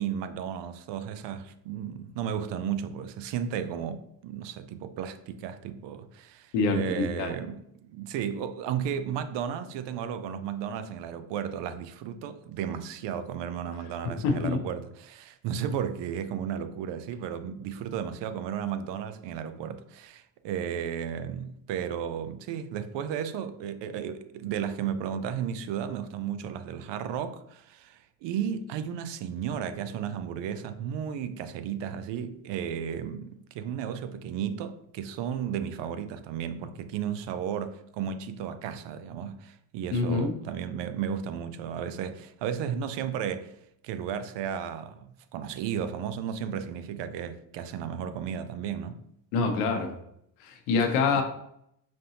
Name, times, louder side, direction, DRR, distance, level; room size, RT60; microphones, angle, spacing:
voice 1, 0.0-43.5 43.8-49.0 50.8-51.2, right 8 dB, 60° right, 0.5 m, -34 dB
voice 2, 6.5-7.3 14.2-14.6 39.9-40.3 49.3-49.9 50.4-51.2, left 4 dB, 85° left, 1.0 m, -26 dB
5.3 x 2.6 x 2.8 m
cardioid pair, 105°, 48 cm